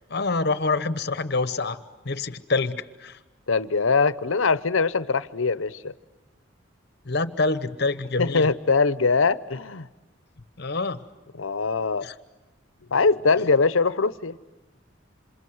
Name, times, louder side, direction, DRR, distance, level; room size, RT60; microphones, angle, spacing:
voice 1, 0.1-1.8 2.0-3.2 7.0-8.5 10.6-11.0 12.0-12.1, left 3 dB, 55° left, 1.0 m, -26 dB
voice 2, 3.5-5.9 8.2-9.9 11.4-12.1 12.9-14.4, left 4 dB, 80° left, 0.9 m, -22 dB
28.0 x 27.0 x 7.9 m
head